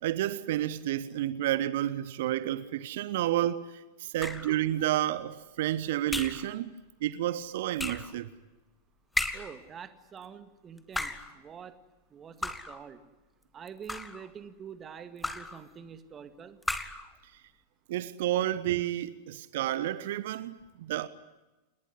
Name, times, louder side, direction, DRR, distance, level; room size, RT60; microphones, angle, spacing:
voice 1, 0.0-6.7 7.0-8.3 17.9-21.1, right 13 dB, 55° right, 1.1 m, -30 dB
sound 1, 4.2-4.6 6.1-6.5 7.8-8.1 9.1-9.6 10.8-11.3 12.4-12.8 13.7-14.3 15.2-15.6 16.6-17.1, left 2 dB, 5° left, 1.9 m, -34 dB
voice 2, 9.3-11.8 12.1-13.0 13.5-16.6, right 7 dB, 25° right, 2.0 m, -46 dB
29.0 x 20.5 x 9.7 m
figure-of-eight pair, 90°, 0 cm